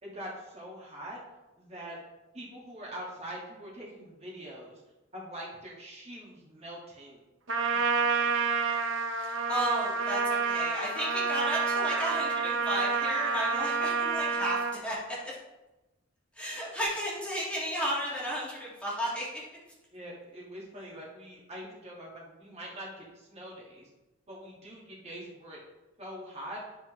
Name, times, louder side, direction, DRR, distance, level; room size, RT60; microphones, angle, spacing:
voice 1, 0.0-1.2 1.5-2.0 2.3-4.8 5.1-7.2 7.9-8.3 19.9-23.9 24.3-25.6 26.0-26.6, equal, 30° right, -4 dB, 1.7 m, -43 dB
Trumpet, 7.5-14.8, right 5 dB, 65° right, 0.8 m, -29 dB
voice 2, 9.2-15.4 16.3-19.4, equal, 5° left, -6 dB, 1.7 m, -33 dB
10.0 x 5.9 x 3.1 m, 1.1 s
head